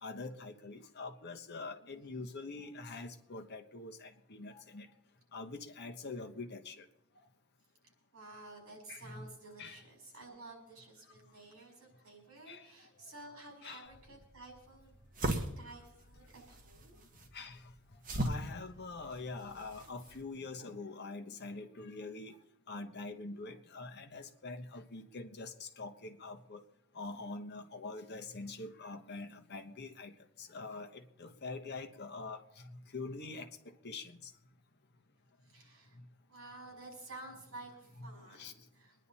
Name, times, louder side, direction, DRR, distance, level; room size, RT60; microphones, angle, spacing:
voice 1, 0.0-4.9 5.3-6.8 8.9-9.2 9.6-9.8 12.5-12.7 13.6-13.9 17.3-17.6 18.1-22.4 22.7-26.6 26.9-30.1 30.4-32.4 32.9-33.5 33.8-34.2 38.4-38.5, left 3 dB, 50° left, 7 dB, 1.1 m, -44 dB
voice 2, 8.1-15.0 15.6-17.0 35.4-36.0 36.3-39.1, right 2 dB, 65° right, 1 dB, 5.6 m, -52 dB
sound 1, 13.9-20.2, right 1 dB, 40° right, 1.6 m, -40 dB
23.5 x 10.5 x 4.2 m, 0.78 s
head